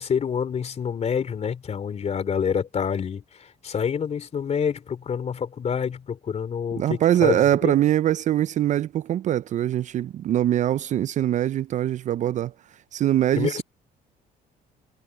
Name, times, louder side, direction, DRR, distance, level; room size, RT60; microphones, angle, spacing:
voice 1, 0.0-7.7 13.3-13.6, left 7 dB, 40° left, 3.3 m, -27 dB
voice 2, 6.8-12.5 12.9-13.6, right 12 dB, 45° right, 0.4 m, -22 dB
cardioid pair, 110°, 17 cm